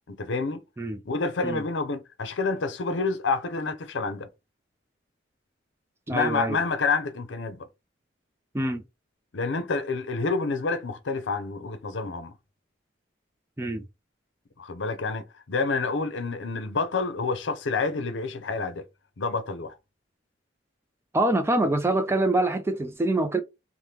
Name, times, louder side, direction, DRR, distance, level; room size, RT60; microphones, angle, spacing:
voice 1, 0.1-0.6 1.0-4.3 6.1-7.7 9.3-12.3 14.6-18.8 19.2-19.8, left 4 dB, 80° left, 0.6 m, -28 dB
voice 2, 6.1-6.6 8.5-8.8 13.6-13.8 21.1-23.4, right 2 dB, 15° right, 0.3 m, -25 dB
3.4 x 2.1 x 2.8 m
head